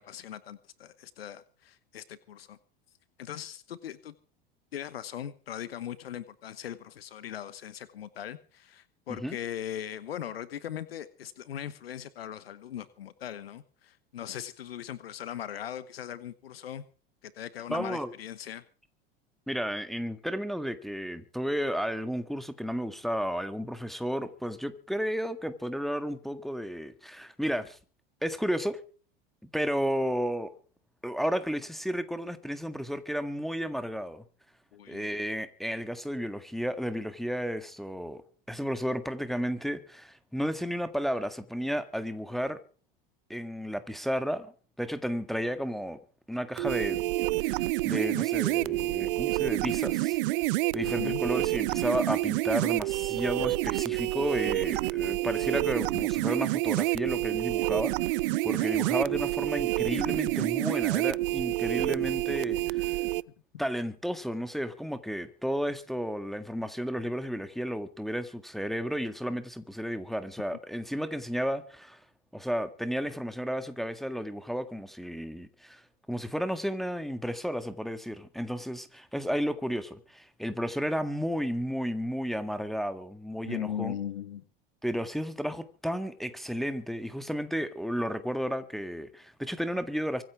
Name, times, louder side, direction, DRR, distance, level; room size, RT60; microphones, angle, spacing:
voice 1, 0.0-2.6 3.2-4.1 4.7-16.8 17.2-18.6 34.7-35.1 50.8-51.2 58.6-58.9 83.4-84.4, left 10 dB, 85° left, 1.1 m, -39 dB
voice 2, 17.7-18.1 19.5-27.8 28.2-28.8 29.5-30.5 31.0-34.2 34.9-38.2 38.5-42.6 43.3-46.0 46.3-47.0 47.4-50.2 50.7-58.2 58.4-63.0 63.6-72.0 72.3-75.8 76.1-83.9 84.8-90.2, equal, ahead, 1.7 m, -32 dB
sound 1, 46.6-63.2, right 19 dB, 65° right, 0.6 m, -28 dB
25.0 x 8.9 x 4.7 m
hypercardioid pair, 85°, 29 cm